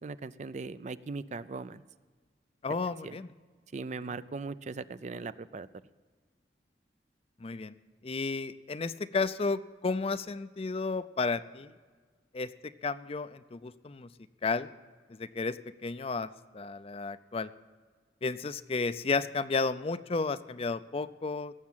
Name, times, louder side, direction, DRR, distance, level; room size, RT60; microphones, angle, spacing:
voice 1, 0.0-1.8 3.0-3.2 3.7-5.7, right 4 dB, 40° right, 15 dB, 0.4 m, -39 dB
voice 2, 2.6-3.3 7.4-7.7 8.0-11.7 12.3-12.5 12.8-14.1 14.4-14.7 15.2-15.6 15.8-16.3 16.5-17.5 18.2-21.5, left 4 dB, 35° left, 14 dB, 0.4 m, -32 dB
18.0 x 7.4 x 7.4 m, 1.5 s
head